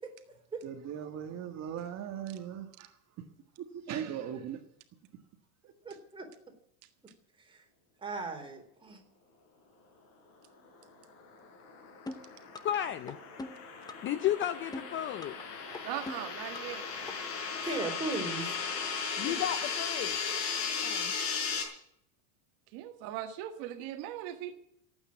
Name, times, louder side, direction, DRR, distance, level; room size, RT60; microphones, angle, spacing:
voice 1, 0.6-3.0 3.7-4.6 5.6-5.7, right 9 dB, 35° right, 1.7 m, -39 dB
voice 2, 5.9-6.3 7.5-7.6 8.0-9.0 17.6-18.6 19.2-19.4, right 3 dB, 10° right, 3.8 m, -37 dB
sound 1, 11.2-21.6, left 6 dB, 60° left, 5.6 m, -36 dB
sound 2, 12.1-12.8 13.1-14.1 14.4-15.4 15.7-16.8 17.1-17.2, left 2 dB, 10° left, 1.0 m, -42 dB
voice 3, 12.6-13.2 14.0-15.4 19.2-20.2 20.8-21.1, left 11 dB, 25° left, 0.5 m, -33 dB
voice 4, 15.8-16.9 22.7-24.5, right 12 dB, 55° right, 1.7 m, -39 dB
16.0 x 8.9 x 8.6 m
supercardioid pair, 135°, 45 cm